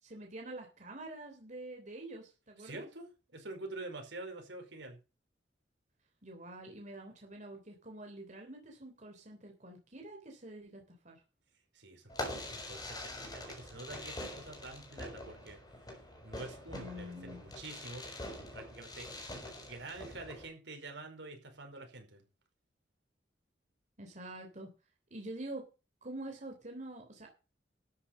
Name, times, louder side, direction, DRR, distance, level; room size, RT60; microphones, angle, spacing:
voice 1, 0.0-2.9 6.2-11.2 16.7-17.4 24.0-24.7 25.1-25.6 26.0-27.3, right 1 dB, 40° right, 2 dB, 3.3 m, -46 dB
voice 2, 2.6-5.0 11.7-15.6 16.2-18.1 18.3-19.1 19.7-22.2, right 2 dB, 75° right, 4 dB, 5.0 m, -47 dB
Fireworks, 12.1-20.5, left 1 dB, 20° left, 6.0 m, -44 dB
13.0 x 9.3 x 5.5 m, 0.31 s
head